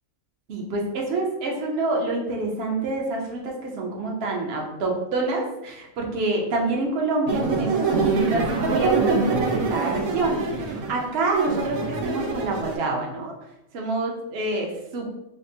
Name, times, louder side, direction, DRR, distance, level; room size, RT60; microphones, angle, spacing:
voice 1, 0.5-13.3 13.7-15.1, right 2 dB, 55° right, 0 dB, 0.9 m, -27 dB
sound 1, 7.3-12.8, right 4 dB, 85° right, 1.1 m, -24 dB
5.8 x 2.1 x 2.6 m, 0.90 s
omnidirectional pair, 1.4 m